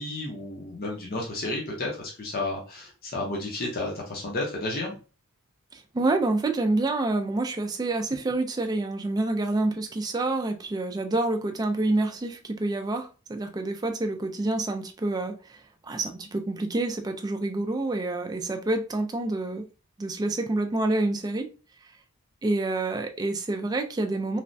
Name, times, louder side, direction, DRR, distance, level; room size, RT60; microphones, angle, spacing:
voice 1, 0.0-5.0, left 2 dB, 45° left, 0.6 m, -32 dB
voice 2, 5.7-19.6 20.0-21.5 22.4-24.4, right 2 dB, 20° right, 0.3 m, -28 dB
3.2 x 2.1 x 2.5 m
head